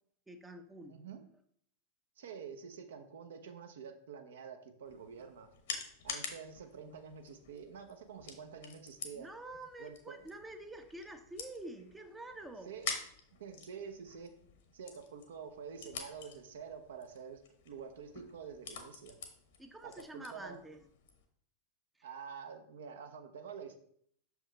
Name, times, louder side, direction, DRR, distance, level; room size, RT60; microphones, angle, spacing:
voice 1, 0.3-1.0 9.1-12.7 19.6-20.8, right 2 dB, 10° right, 7 dB, 0.6 m, -48 dB
voice 2, 0.9-1.3 2.2-5.5 6.0-9.3 9.8-10.2 12.7-12.9 13.4-14.3 14.7-19.2 19.8-20.6 22.0-23.8, right 6 dB, 60° right, 7 dB, 0.7 m, -48 dB
sound 1, 4.8-21.2, left 6 dB, 55° left, 1.0 m, -48 dB
6.3 x 4.9 x 3.2 m, 0.66 s
figure-of-eight pair, 90°, 0 cm